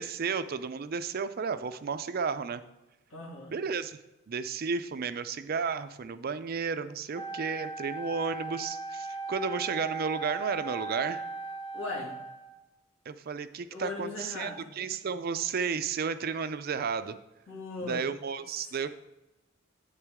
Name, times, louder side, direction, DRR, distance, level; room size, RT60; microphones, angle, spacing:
voice 1, 0.0-2.6 3.5-4.0 4.3-11.3 13.1-17.2 17.8-18.9, right 5 dB, 45° right, 12 dB, 0.4 m, -33 dB
voice 2, 3.1-3.5 11.7-12.1 13.7-14.7 17.5-18.0, left 2 dB, 75° left, -3 dB, 2.6 m, -38 dB
Wind instrument woodwind instrument, 7.1-12.6, right 3 dB, 25° left, 1.1 m, -38 dB
9.9 x 8.2 x 3.6 m, 0.98 s
head